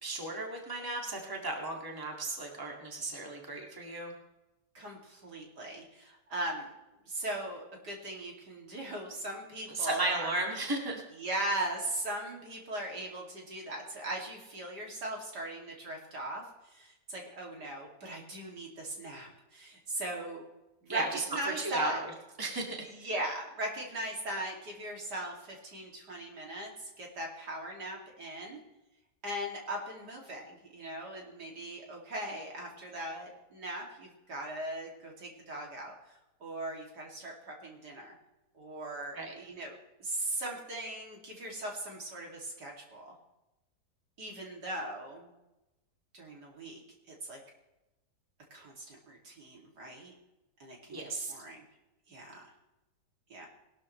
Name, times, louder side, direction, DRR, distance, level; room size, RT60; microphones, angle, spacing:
voice 1, 0.0-4.1 9.7-11.0 20.9-21.2 21.6-22.1 22.4-22.9 39.1-39.3 50.9-51.3, right 2 dB, 10° right, 0 dB, 2.1 m, -35 dB
voice 2, 4.7-6.7 7.1-10.3 11.2-20.4 20.8-22.0 22.8-28.6 29.2-35.9 36.4-38.1 38.5-39.7 40.0-43.1 44.2-45.3 46.1-46.8 47.1-47.4 48.5-50.1 50.6-51.6 52.1-52.4 53.3-53.5, right 1 dB, 70° right, -1 dB, 3.2 m, -39 dB
20.5 x 12.5 x 3.2 m, 0.96 s
omnidirectional pair, 1.9 m